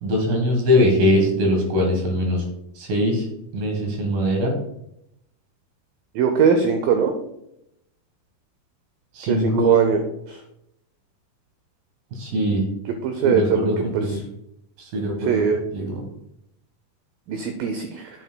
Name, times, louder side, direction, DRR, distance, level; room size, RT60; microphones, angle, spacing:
voice 1, 0.0-2.4 2.8-3.2 3.5-4.6 9.1-9.9 12.2-12.7 13.2-14.2 14.8-16.0, left 1 dB, 65° right, 1 dB, 3.0 m, -22 dB
voice 2, 6.2-7.1 9.3-10.0 10.3-10.4 13.0-13.6 13.9-14.2 15.2-15.6 17.3-18.1, right 6 dB, 80° right, 6 dB, 2.1 m, -21 dB
9.2 x 8.0 x 2.2 m, 0.81 s
omnidirectional pair, 4.7 m